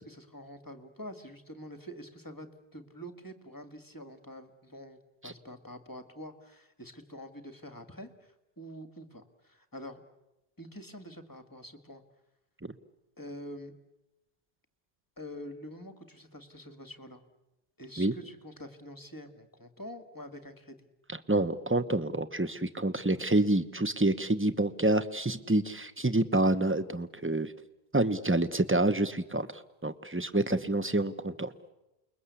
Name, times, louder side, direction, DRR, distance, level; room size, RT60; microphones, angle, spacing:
voice 1, 0.0-10.0 10.6-12.0 13.2-13.7 15.2-17.2 17.8-20.9 30.3-30.6, equal, 20° left, 8 dB, 2.0 m, -46 dB
voice 2, 21.1-27.5 27.9-29.5 29.8-31.5, right 2 dB, 15° right, 11 dB, 1.0 m, -28 dB
29.0 x 22.0 x 8.3 m, 0.96 s
omnidirectional pair, 1.0 m